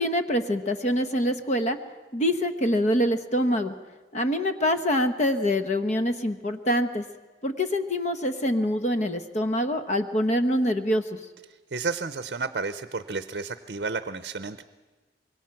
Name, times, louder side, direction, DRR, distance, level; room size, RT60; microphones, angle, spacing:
voice 1, 0.0-1.8 2.1-3.7 4.1-7.0 7.4-11.0, equal, 40° left, 8 dB, 1.0 m, -25 dB
voice 2, 11.7-14.6, right 4 dB, 60° right, 12 dB, 0.7 m, -31 dB
25.5 x 22.0 x 5.9 m, 1.3 s
head